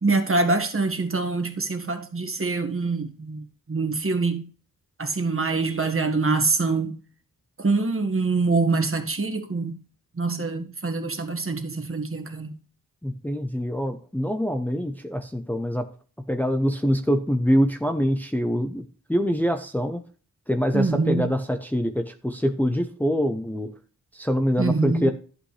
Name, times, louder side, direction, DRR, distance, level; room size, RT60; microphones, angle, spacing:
voice 1, 0.0-4.4 5.0-6.9 7.6-9.8 10.2-12.5 20.7-21.3 24.6-25.1, right 3 dB, 40° right, 1.7 m, -25 dB
voice 2, 13.0-15.9 16.3-20.0 20.5-23.7 24.1-25.1, equal, 5° left, 0.8 m, -24 dB
11.5 x 7.9 x 3.3 m
wide cardioid pair, 100°, 32 cm